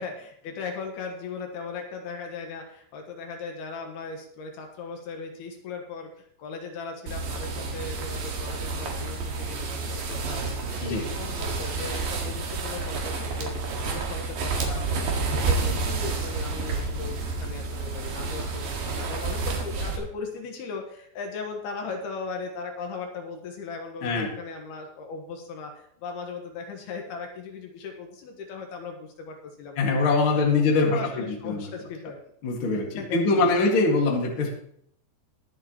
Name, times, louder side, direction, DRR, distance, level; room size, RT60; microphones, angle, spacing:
voice 1, 0.0-13.5 13.8-29.9 30.3-32.2 33.0-33.7, left 4 dB, 70° left, 3 dB, 3.1 m, -38 dB
sound 1, 7.1-20.0, right 3 dB, 60° right, 3.2 m, -30 dB
voice 2, 29.7-31.0 31.4-31.7 32.4-34.5, left 3 dB, 45° left, 0 dB, 1.8 m, -23 dB
22.0 x 7.6 x 3.0 m, 0.67 s
omnidirectional pair, 5.1 m